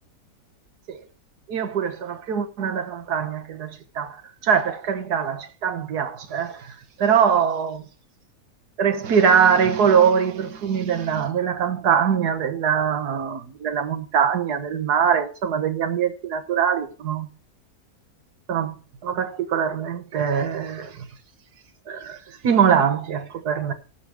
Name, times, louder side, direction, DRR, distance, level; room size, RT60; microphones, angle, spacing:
voice 1, 1.5-7.9 8.8-17.3 18.5-18.8 19.0-21.1 21.9-23.7, right 7 dB, 85° right, 1.7 m, -22 dB
17.0 x 5.7 x 4.8 m
omnidirectional pair, 1.6 m